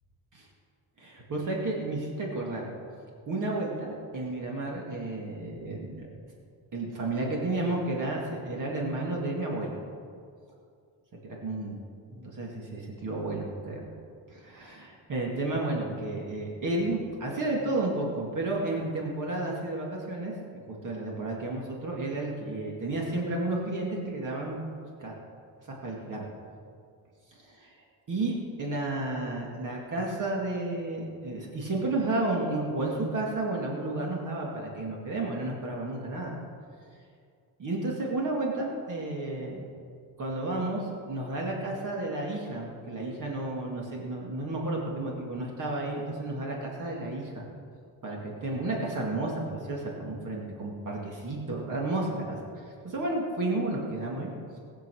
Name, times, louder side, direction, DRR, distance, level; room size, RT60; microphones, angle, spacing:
voice 1, 1.0-2.7 3.3-6.1 6.7-9.8 11.4-11.8 12.1-13.8 14.3-20.3 20.8-24.6 25.0-25.2 25.8-26.2 27.3-27.7 28.1-36.4 37.6-39.6 40.2-47.5 48.0-54.3, right 2 dB, 45° right, -2 dB, 2.2 m, -32 dB
19.5 x 6.9 x 6.3 m, 2.3 s
cardioid pair, 170°, 44 cm